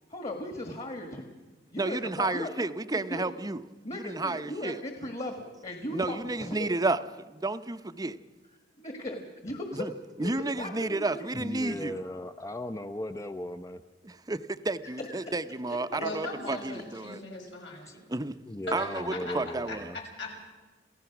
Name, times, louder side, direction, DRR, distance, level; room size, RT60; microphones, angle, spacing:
voice 1, 0.1-1.3 1.7-2.5 3.1-3.3 3.8-6.7 8.8-9.9 10.2-11.3 15.0-15.2, left 1 dB, 35° left, 5 dB, 1.7 m, -37 dB
voice 2, 1.7-3.6 3.9-4.8 5.9-7.0 7.3-8.2 9.7-9.9 10.2-12.0 14.0-17.2 18.1-18.3 18.7-19.9, right 2 dB, 20° right, 12 dB, 0.7 m, -31 dB
voice 3, 11.3-13.8 17.9-18.0 18.5-20.0, left 1 dB, 15° left, 8 dB, 0.5 m, -37 dB
voice 4, 16.0-18.0 18.7-20.3, left 2 dB, 85° left, -1 dB, 6.4 m, -39 dB
28.0 x 16.0 x 6.0 m, 1.3 s
head